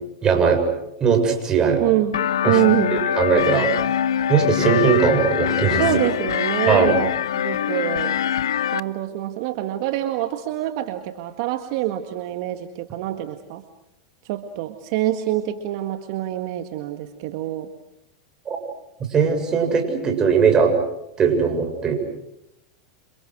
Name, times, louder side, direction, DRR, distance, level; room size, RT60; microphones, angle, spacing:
voice 1, 0.2-0.6 1.0-1.8 2.4-2.6 2.9-3.7 4.3-5.8 6.7-6.9 18.5-18.6 19.1-20.7 21.2-21.9, right 6 dB, 30° right, 5 dB, 7.5 m, -19 dB
voice 2, 1.8-3.0 5.8-8.2 8.7-13.6 14.3-17.7, right 14 dB, 60° right, 7 dB, 1.9 m, -25 dB
sound 1, 2.1-8.8, left 9 dB, 85° left, 0.9 m, -23 dB
29.5 x 28.0 x 6.3 m, 0.84 s
hypercardioid pair, 105°, 3 cm